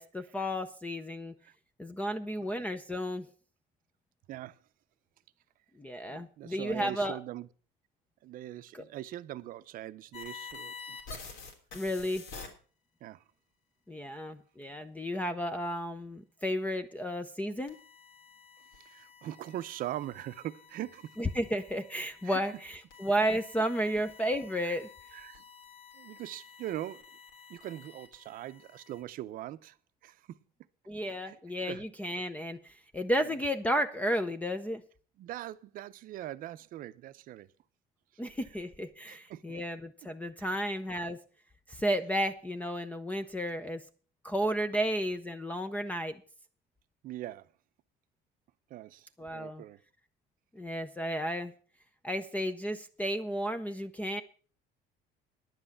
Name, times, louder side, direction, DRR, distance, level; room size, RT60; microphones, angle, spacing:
voice 1, 0.0-1.3 1.8-3.3 5.8-7.2 8.7-8.8 11.7-12.2 13.9-17.8 21.2-24.9 30.9-34.8 38.2-41.2 41.7-43.8 44.2-46.2 49.2-49.6 50.5-51.5 52.0-54.2, equal, 10° left, 0.5 m, -33 dB
voice 2, 6.1-7.5 8.2-11.0 13.0-13.2 18.9-21.1 22.2-22.4 24.6-24.7 25.1-25.4 25.9-27.0 27.5-29.7 30.0-30.4 31.2-31.4 31.7-31.8 33.2-33.3 35.2-37.5 39.1-39.6 40.4-40.6 47.0-47.4 48.7-49.8, right 13 dB, 50° right, 0.6 m, -41 dB
sound 1, 10.1-12.5 17.7-29.0, left 5 dB, 85° left, 3.2 m, -50 dB
10.5 x 7.9 x 7.2 m
cardioid pair, 165°, 18 cm